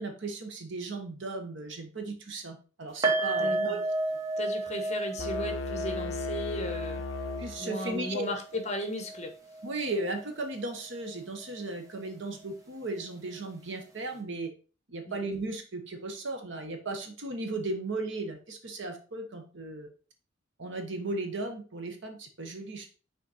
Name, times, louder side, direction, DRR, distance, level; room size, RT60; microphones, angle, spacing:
voice 1, 0.0-3.8 7.4-8.3 9.6-14.5 14.9-19.9 20.6-22.9, right 2 dB, 60° right, 5 dB, 1.1 m, -36 dB
sound 1, 3.0-10.2 10.5-10.7 11.1-11.2, right 2 dB, 15° right, 1.3 m, -33 dB
voice 2, 3.4-3.8 4.4-7.0 7.6-9.3 15.1-15.2, left 1 dB, 35° left, 5 dB, 1.2 m, -36 dB
sound 2, 5.2-8.1, left 4 dB, 65° left, 0.4 m, -36 dB
6.1 x 4.3 x 4.2 m, 0.37 s
head